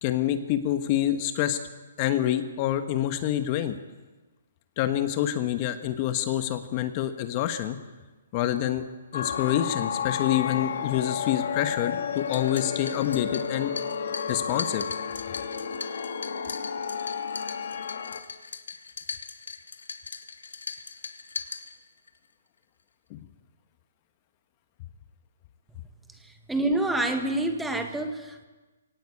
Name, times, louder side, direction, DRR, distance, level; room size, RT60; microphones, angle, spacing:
voice 1, 0.0-1.6 2.0-3.8 4.8-7.8 8.3-8.8 9.1-13.7 14.3-14.8 23.1-23.2, left 12 dB, 30° left, 9 dB, 1.4 m, -27 dB
sound 1, 9.1-18.2, left 7 dB, 60° left, 2.6 m, -32 dB
sound 2, 12.2-22.2, left 5 dB, 90° left, 2.1 m, -40 dB
voice 2, 26.2-28.4, right 2 dB, 5° right, 6 dB, 1.7 m, -27 dB
23.0 x 18.5 x 8.5 m, 1.2 s
hypercardioid pair, 160°, 0 cm